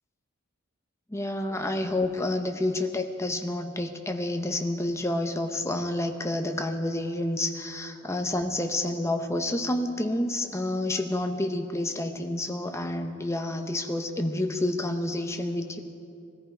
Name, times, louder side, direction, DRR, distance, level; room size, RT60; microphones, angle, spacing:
voice 1, 1.1-15.8, left 1 dB, 15° left, 6 dB, 0.8 m, -29 dB
20.5 x 14.0 x 4.8 m, 2.5 s
head